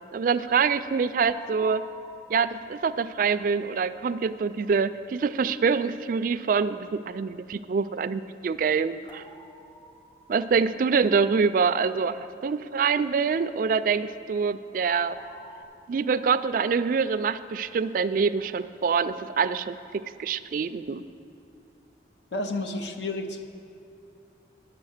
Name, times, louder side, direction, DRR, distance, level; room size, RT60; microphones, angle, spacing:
voice 1, 0.1-1.9 2.3-9.2 10.3-15.2 15.9-19.8 20.2-21.0, right 5 dB, 50° right, 13 dB, 0.3 m, -25 dB
sound 1, 1.3-4.2 9.1-11.3 15.2-15.6, equal, 25° left, 1.3 m, -49 dB
voice 2, 22.3-23.5, left 2 dB, 80° left, 6 dB, 0.8 m, -31 dB
10.5 x 7.2 x 6.4 m, 2.6 s
head